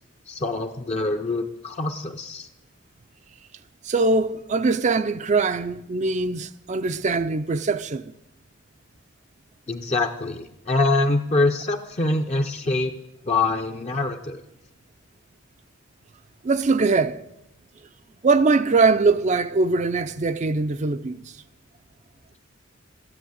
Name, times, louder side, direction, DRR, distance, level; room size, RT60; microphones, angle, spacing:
voice 1, 0.3-2.5 9.7-12.9 13.3-14.4, left 2 dB, 30° left, 0.6 m, -24 dB
voice 2, 3.8-8.1 16.4-17.2 18.2-21.2, right 3 dB, 35° right, 0.4 m, -22 dB
13.0 x 11.0 x 7.9 m
head